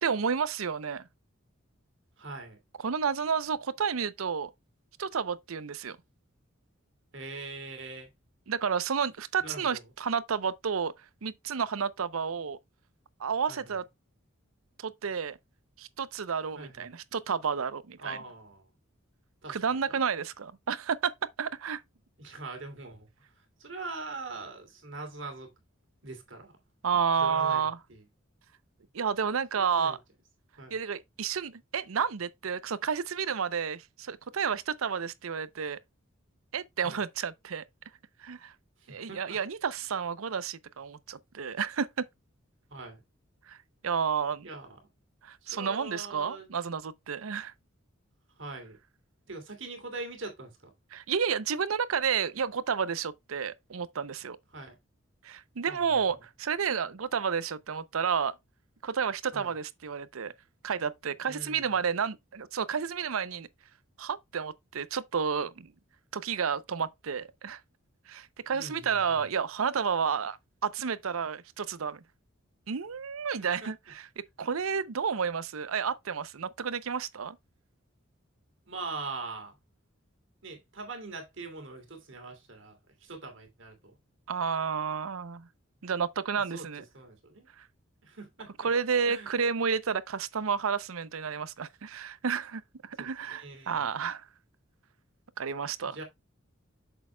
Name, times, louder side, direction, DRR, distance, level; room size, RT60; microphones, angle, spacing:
voice 1, 0.0-1.0 2.8-4.5 5.0-6.0 8.5-10.9 11.2-12.6 13.2-13.8 14.8-15.4 15.8-18.2 19.5-21.1 21.4-21.8 26.8-27.8 28.9-30.0 30.7-35.8 36.5-37.6 38.2-38.5 38.9-42.1 43.5-43.6 43.8-44.5 45.2-47.5 50.9-54.4 55.2-58.3 58.8-60.3 60.6-63.5 64.0-65.7 66.1-67.6 68.1-70.4 70.6-72.0 72.7-77.4 84.3-85.5 85.8-86.8 87.6-87.7 88.6-94.2 95.4-96.0, right 6 dB, 85° right, 0.6 m, -31 dB
voice 2, 2.2-2.6 7.1-8.1 9.4-9.8 13.5-13.8 16.5-16.9 18.0-18.7 19.4-20.0 22.2-23.1 23.6-25.5 26.0-26.5 27.2-28.0 29.5-30.0 30.6-30.8 36.8-37.0 38.8-39.4 42.7-43.0 44.4-44.8 45.4-46.5 48.4-48.8 49.3-50.7 54.5-54.8 55.6-56.0 59.3-59.5 61.3-61.8 68.5-69.2 73.4-73.7 78.7-79.6 80.4-84.0 86.5-86.7 86.9-87.5 88.0-88.5 89.0-89.4 92.9-93.9 95.8-96.0, right 3 dB, 60° right, 2.8 m, -42 dB
8.5 x 6.8 x 2.2 m
head